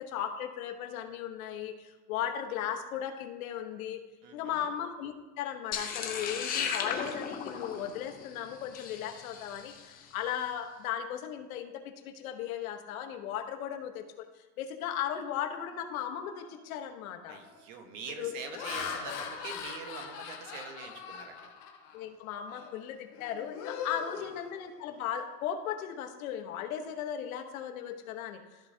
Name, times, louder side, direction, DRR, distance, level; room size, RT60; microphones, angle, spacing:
voice 1, 0.0-4.0 4.3-14.2 14.6-17.4 18.2-18.6 21.9-28.4, left 9 dB, 65° left, 5 dB, 1.1 m, -37 dB
voice 2, 4.2-4.7 17.3-21.5 24.2-24.3, right 5 dB, 55° right, 5 dB, 1.3 m, -44 dB
sound 1, 5.7-10.0, left 7 dB, 20° left, 0.6 m, -36 dB
Laughter, 16.5-16.7 17.3-17.6 18.2-22.0 22.5-22.7 23.1-25.0, left 6 dB, 40° left, 1.2 m, -41 dB
13.5 x 4.7 x 2.7 m, 1.2 s
supercardioid pair, 150°, 45 cm